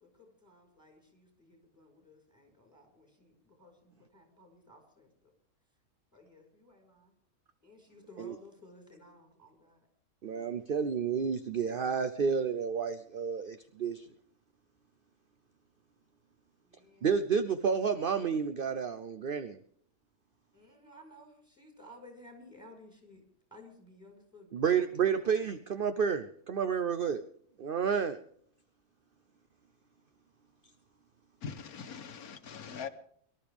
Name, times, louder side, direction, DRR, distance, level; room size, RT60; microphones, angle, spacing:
voice 1, 0.0-5.3 6.1-7.1 7.6-9.9 16.6-17.1 20.5-23.2 23.5-25.4, left 1 dB, 5° right, 4.9 m, -56 dB
voice 2, 10.2-14.0 17.0-19.6 24.5-27.2 27.6-28.2, right 6 dB, 50° right, 0.7 m, -30 dB
voice 3, 31.4-32.9, left 6 dB, 85° left, 1.5 m, -42 dB
23.5 x 12.5 x 3.5 m
omnidirectional pair, 1.5 m